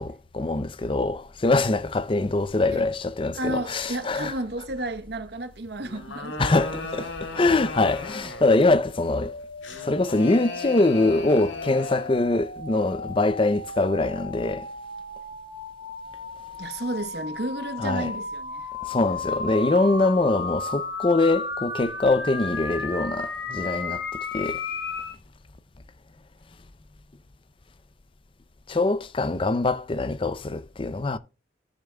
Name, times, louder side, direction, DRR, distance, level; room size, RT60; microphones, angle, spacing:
voice 1, 0.0-4.3 6.4-7.1 7.3-9.3 9.8-14.7 17.8-18.1 18.9-24.0 24.3-24.6 28.7-31.2, left 2 dB, 25° left, 0.5 m, -23 dB
voice 2, 3.3-6.8 16.6-18.7, right 1 dB, 55° right, 0.9 m, -32 dB
sound 1, 5.8-8.6 9.6-12.2, left 3 dB, 85° left, 1.8 m, -37 dB
sound 2, 6.3-25.1, left 4 dB, 65° left, 1.6 m, -35 dB
16.0 x 6.9 x 2.2 m
head